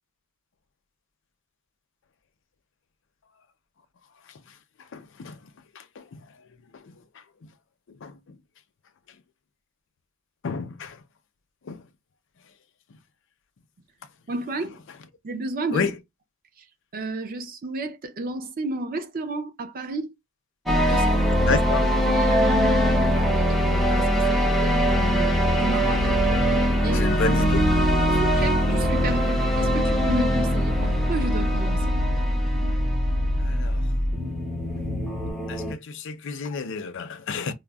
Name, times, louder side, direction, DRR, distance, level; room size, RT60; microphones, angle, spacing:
voice 1, 4.9-5.4 5.7-6.2 6.7-7.2 7.9-8.2 10.4-11.0 11.6-11.8 15.7-15.9 21.4-21.8 26.9-27.6 33.4-33.9 35.5-37.5, left 4 dB, 60° left, 0.5 m, -30 dB
voice 2, 14.3-14.8 15.2-15.9 16.6-20.1 20.7-21.6 22.1-26.2 26.8-27.2 28.1-31.9, right 2 dB, 40° right, 0.5 m, -32 dB
sound 1, 20.6-35.7, equal, ahead, 0.6 m, -22 dB
sound 2, 25.7-35.3, left 2 dB, 80° right, 0.9 m, -32 dB
4.9 x 2.0 x 2.2 m
head